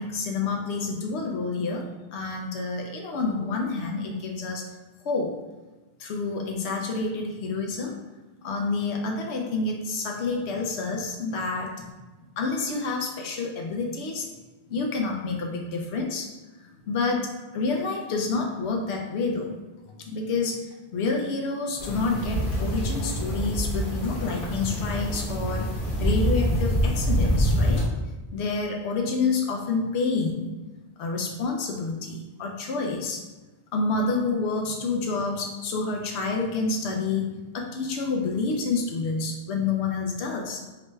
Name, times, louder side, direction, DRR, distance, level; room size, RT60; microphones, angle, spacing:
voice 1, 0.0-1.9 2.1-4.6 5.0-5.3 6.0-7.9 8.4-11.9 12.4-14.3 14.7-16.3 16.9-17.3 17.5-19.5 20.1-20.7 20.9-25.7 26.0-27.8 28.3-30.5 31.0-33.2 33.7-40.6, left 4 dB, 85° left, 1 dB, 0.9 m, -28 dB
sound 1, 21.8-27.8, equal, 55° left, 1.1 m, -26 dB
4.9 x 2.2 x 3.0 m, 1.1 s
omnidirectional pair, 1.1 m